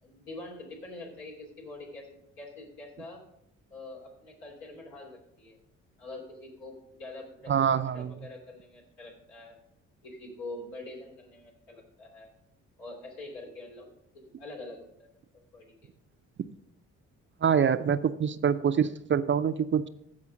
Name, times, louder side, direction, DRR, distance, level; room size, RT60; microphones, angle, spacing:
voice 1, 0.0-3.2 3.7-5.6 6.0-7.6 7.9-9.6 10.0-12.3 12.8-15.1 15.5-15.7, left 2 dB, 75° left, -2 dB, 3.0 m, -45 dB
voice 2, 7.5-8.1 17.4-19.9, right 7 dB, 35° right, 12 dB, 0.5 m, -25 dB
15.0 x 5.0 x 5.1 m, 0.77 s
hypercardioid pair, 50°, 36 cm